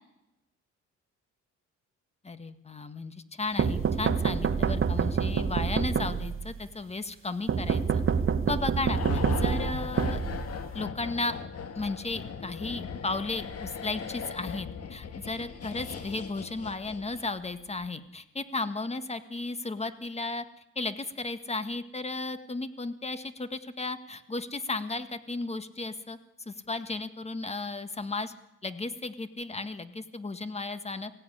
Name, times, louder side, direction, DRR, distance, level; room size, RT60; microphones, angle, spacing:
voice 1, 2.2-8.0 8.5-10.2 10.7-11.4 11.7-20.4 20.7-26.2 26.4-28.3 28.6-31.1, left 3 dB, 20° left, 11 dB, 1.7 m, -34 dB
sound 1, 3.6-6.5 7.5-10.8, right 6 dB, 45° right, 1.7 m, -27 dB
sound 2, 8.9-17.4 17.7-17.9, left 6 dB, 55° left, 1.9 m, -38 dB
23.0 x 16.5 x 10.0 m, 0.96 s
cardioid pair, 90°, 30 cm